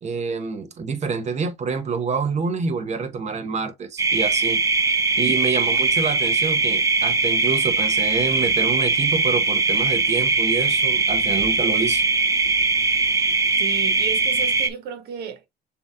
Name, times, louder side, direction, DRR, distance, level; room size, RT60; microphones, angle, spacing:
voice 1, 0.0-4.6 5.2-12.0, right 5 dB, 40° right, 1.1 m, -27 dB
sound 1, 4.0-14.7, right 4 dB, 20° right, 0.6 m, -21 dB
voice 2, 13.6-15.5, right 7 dB, 75° right, 1.5 m, -33 dB
6.9 x 3.0 x 2.3 m
cardioid pair, 110°, 17 cm